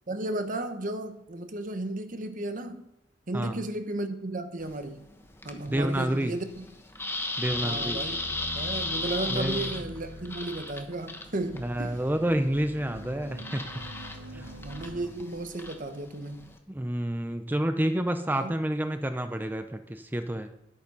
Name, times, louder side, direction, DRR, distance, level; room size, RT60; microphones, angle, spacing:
voice 1, 0.1-2.9 3.3-5.1 5.4-6.6 7.6-8.2 8.5-12.0 14.4-16.5 18.4-18.6, right 2 dB, 45° right, 8 dB, 1.1 m, -34 dB
sound 1, 4.6-16.6, left 2 dB, 15° left, 1.1 m, -37 dB
voice 2, 5.7-6.3 7.4-8.0 9.3-9.7 11.6-13.6 14.3-14.7 16.7-20.5, right 1 dB, 10° right, 8 dB, 0.6 m, -29 dB
sound 2, 7.5-15.1, equal, 70° right, 1.7 m, -44 dB
11.0 x 8.9 x 5.5 m, 0.83 s
head